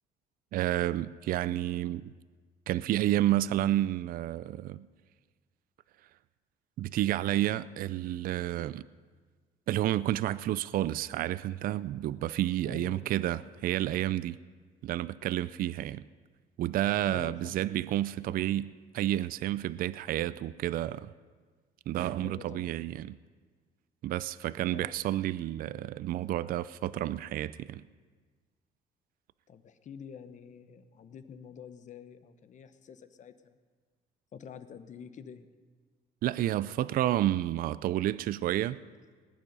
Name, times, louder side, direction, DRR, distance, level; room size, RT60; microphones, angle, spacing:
voice 1, 0.5-2.1 2.7-4.9 6.8-8.8 9.7-14.4 14.8-16.0 16.6-21.1 21.9-23.2 24.0-27.8 36.2-38.8, right 13 dB, 60° right, 17 dB, 0.4 m, -30 dB
voice 2, 12.6-13.1 17.1-17.7 22.2-22.7 24.7-24.9 29.5-33.6 34.3-35.5, left 7 dB, 45° left, 11 dB, 1.0 m, -47 dB
19.5 x 9.5 x 5.4 m, 1.5 s
cardioid pair, 110°, 17 cm